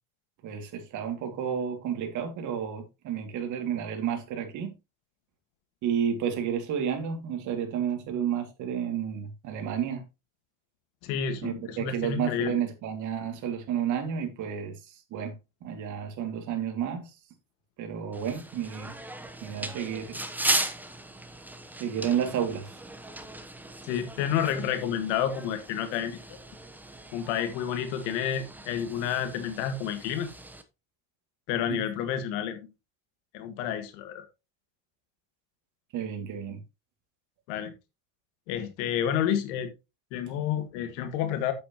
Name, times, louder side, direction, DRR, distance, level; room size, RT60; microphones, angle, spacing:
voice 1, 0.4-4.7 5.8-10.0 11.4-14.8 15.1-15.3 15.6-17.1 17.8-19.0 19.4-20.2 21.8-22.7 31.7-31.8 35.9-36.6, right 8 dB, 55° right, 2.5 m, -31 dB
voice 2, 11.0-12.6 23.8-26.2 27.1-30.3 31.5-32.6 33.3-34.2 37.5-37.7 38.5-39.7 40.1-41.5, left 9 dB, 85° left, 1.8 m, -30 dB
sound 1, 18.1-30.6, right 1 dB, 5° right, 1.0 m, -37 dB
8.5 x 8.1 x 3.0 m
cardioid pair, 125°, 35 cm